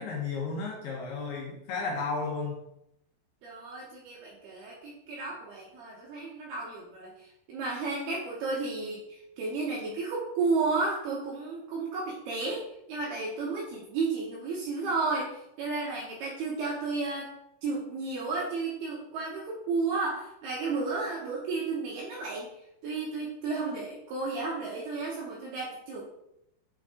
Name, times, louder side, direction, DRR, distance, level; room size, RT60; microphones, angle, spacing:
voice 1, 0.0-2.6, left 4 dB, 75° left, -2 dB, 2.4 m, -33 dB
voice 2, 3.4-17.3 17.6-22.5 22.8-26.0, right 3 dB, 90° right, -4 dB, 2.3 m, -33 dB
8.8 x 3.7 x 3.7 m, 0.81 s
omnidirectional pair, 5.9 m